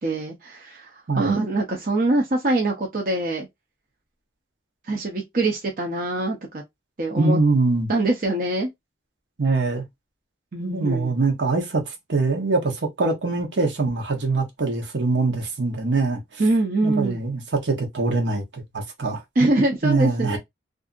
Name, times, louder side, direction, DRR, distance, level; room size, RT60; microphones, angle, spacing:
voice 1, 0.0-3.5 4.9-6.6 7.0-7.4 7.9-8.7 10.5-11.2 16.4-17.2 19.4-20.4, right 2 dB, 45° right, 0.6 m, -23 dB
voice 2, 7.2-7.9 9.4-9.8 10.6-16.4 16.8-19.2 19.8-20.4, right 3 dB, 75° right, 0.9 m, -23 dB
2.7 x 2.5 x 2.4 m
head